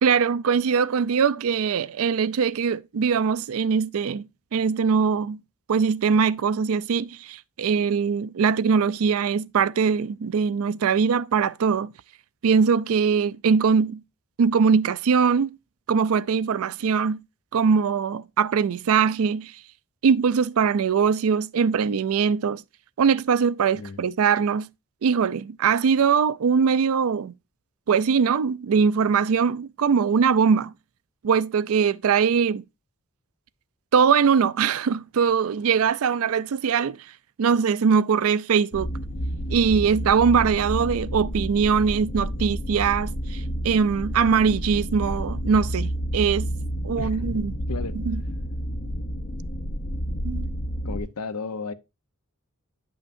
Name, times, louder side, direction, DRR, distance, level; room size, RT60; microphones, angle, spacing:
voice 1, 0.0-4.2 4.5-5.4 5.7-11.9 12.4-14.0 14.4-15.5 15.9-17.2 17.5-19.5 20.0-22.6 23.0-24.7 25.0-27.3 27.9-30.7 31.2-32.6 33.9-37.0 37.4-38.9 39.5-46.5 46.8-47.5 48.1-48.2 50.2-50.5, right 6 dB, 70° right, 0.4 m, -22 dB
sound 1, 38.7-51.0, equal, 40° left, 0.6 m, -30 dB
voice 2, 47.0-47.4 47.7-48.0 50.8-51.7, left 4 dB, 90° left, 0.7 m, -34 dB
10.5 x 5.7 x 2.5 m
head